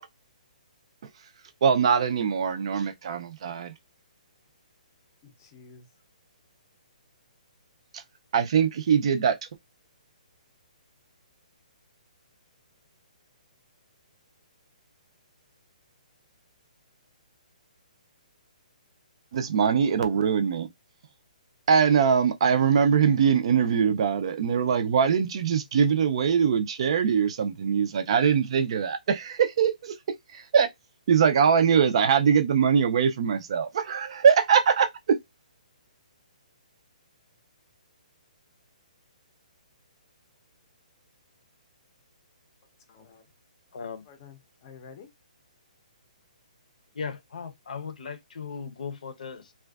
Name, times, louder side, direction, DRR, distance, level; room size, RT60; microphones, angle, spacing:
voice 1, 1.6-3.7 7.9-8.0 8.3-9.4 19.3-20.7 21.7-30.0 30.3-30.7 31.1-35.2, right 7 dB, 45° right, 0.4 m, -22 dB
voice 2, 5.2-5.9 42.9-43.2 44.1-45.1, left 6 dB, 25° left, 0.5 m, -50 dB
voice 3, 43.7-44.0 46.9-49.5, left 5 dB, 70° left, 0.6 m, -37 dB
2.4 x 2.2 x 2.3 m
hypercardioid pair, 165°, 4 cm